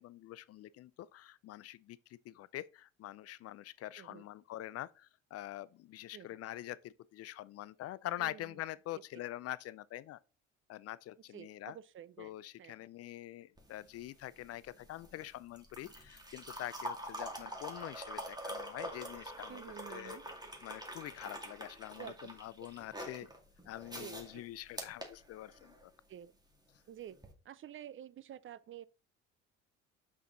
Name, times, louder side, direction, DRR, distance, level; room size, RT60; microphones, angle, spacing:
voice 1, 0.0-10.2 10.7-11.8 12.2-19.6 19.9-20.2 20.6-23.3 23.7-25.7, left 14 dB, 45° left, 0.4 m, -45 dB
voice 2, 4.0-4.3 6.1-6.3 8.2-8.6 8.9-9.0 11.3-12.8 19.5-20.3 22.0-22.3 23.2-23.3 24.0-24.4 26.1-26.3 26.9-27.2 27.4-28.8, right 10 dB, 35° right, 0.5 m, -50 dB
sound 1, 13.6-25.9 27.1-27.3, equal, 10° right, 2.2 m, -46 dB
6.1 x 5.7 x 4.0 m
hypercardioid pair, 60°, 36 cm